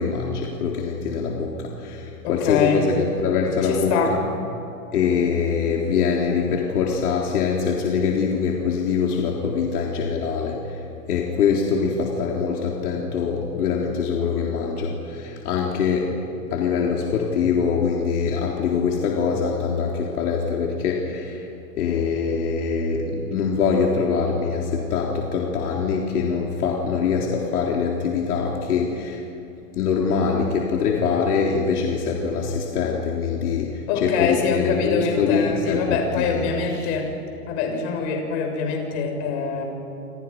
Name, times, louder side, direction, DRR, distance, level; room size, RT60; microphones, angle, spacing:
voice 1, 0.0-4.2 4.9-10.6 11.1-16.2 16.5-21.4 21.8-29.2 29.8-36.5 36.8-36.9, left 5 dB, 70° left, -1 dB, 3.8 m, -23 dB
voice 2, 2.2-2.9 3.6-4.2 33.9-37.1 37.5-39.6, left 5 dB, 45° left, 2 dB, 6.6 m, -24 dB
28.5 x 27.5 x 5.7 m, 2.8 s
hypercardioid pair, 145°, 46 cm